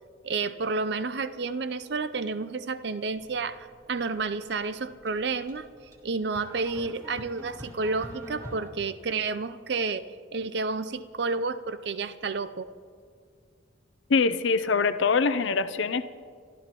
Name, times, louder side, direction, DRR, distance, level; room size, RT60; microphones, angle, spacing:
voice 1, 0.2-5.7 6.0-10.1 10.3-12.7, right 4 dB, 60° right, 13 dB, 0.5 m, -30 dB
sound 1, 3.1-8.7, equal, 20° right, 2.6 m, -46 dB
voice 2, 14.1-16.0, left 4 dB, 75° left, 12 dB, 0.5 m, -24 dB
28.5 x 12.5 x 3.0 m, 2.1 s
head